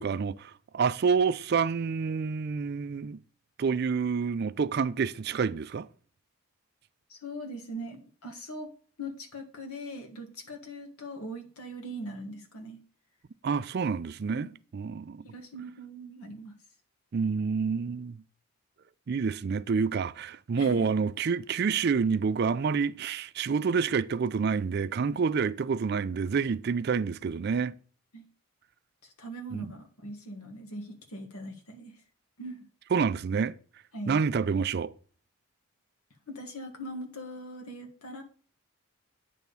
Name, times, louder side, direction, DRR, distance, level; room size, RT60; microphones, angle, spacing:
voice 1, 0.0-3.2 3.6-5.9 13.4-15.2 17.1-18.2 19.1-27.7 29.5-29.7 32.9-33.5 34.1-34.9, right 5 dB, 45° right, 0.3 m, -28 dB
voice 2, 7.1-8.7 9.0-12.8 15.3-16.5 20.6-20.9 28.1-28.2 29.0-32.0 32.4-32.7 33.9-34.2 36.3-38.2, right 1 dB, 85° left, 1.7 m, -41 dB
9.2 x 3.5 x 6.9 m
head